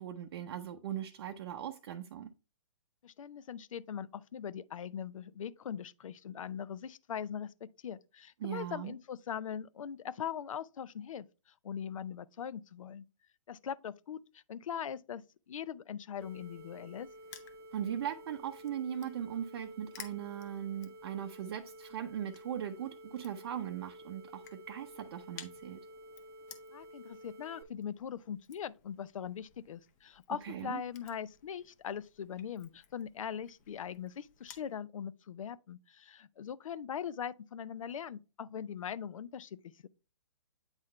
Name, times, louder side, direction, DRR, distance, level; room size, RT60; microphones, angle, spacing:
voice 1, 0.0-2.3 8.4-8.9 17.7-25.8 30.4-30.8, right 9 dB, 50° right, 0.6 m, -39 dB
voice 2, 3.0-13.0 13.5-17.1 26.7-39.6, left 8 dB, 75° left, 0.5 m, -41 dB
Crushing, 16.2-34.7, left 9 dB, 30° left, 0.8 m, -58 dB
sound 1, 16.2-27.6, equal, 15° right, 0.8 m, -52 dB
8.8 x 3.9 x 3.1 m
hypercardioid pair, 155°, 17 cm